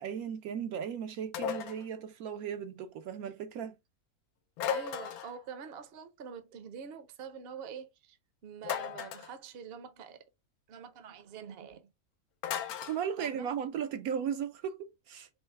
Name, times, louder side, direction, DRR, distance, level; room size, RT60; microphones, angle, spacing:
voice 1, 0.0-3.8 12.8-15.3, right 8 dB, 75° right, 1.0 m, -36 dB
sound 1, 1.3-1.8 4.6-5.4 8.6-9.3 12.4-13.0, left 8 dB, 75° left, 1.0 m, -35 dB
voice 2, 4.7-8.2 8.4-10.2 10.7-11.9 13.2-13.5, right 7 dB, 50° right, 0.8 m, -45 dB
5.5 x 2.1 x 3.2 m
omnidirectional pair, 1.6 m